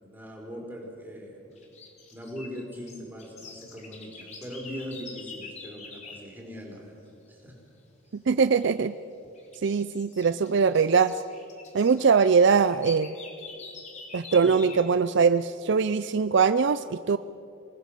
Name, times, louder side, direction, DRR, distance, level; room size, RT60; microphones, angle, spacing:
voice 1, 0.0-1.6 2.1-7.6 8.0-8.2 14.4-14.5 15.9-16.1, equal, 10° right, -2 dB, 4.9 m, -41 dB
sound 1, 1.6-6.3 8.5-8.9 9.3-14.9, left 4 dB, 35° left, 3.2 m, -46 dB
voice 2, 8.3-8.9 9.6-11.1 11.7-13.2 14.1-17.2, right 5 dB, 60° right, 13 dB, 0.4 m, -22 dB
28.0 x 19.5 x 6.7 m, 2.7 s
head